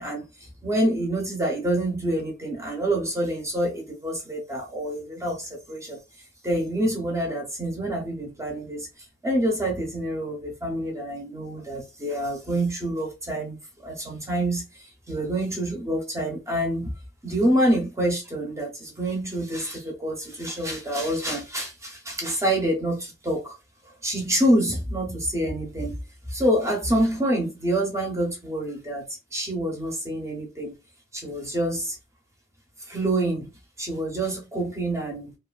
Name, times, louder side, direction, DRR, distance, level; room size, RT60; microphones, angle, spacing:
voice 1, 0.0-6.0 6.4-8.9 9.2-16.9 17.2-23.6 24.0-26.0 26.3-29.1 29.3-30.8 31.1-32.0 32.9-33.5 33.8-35.4, right 1 dB, 15° right, 0.7 m, -27 dB
2.5 x 2.4 x 2.3 m
head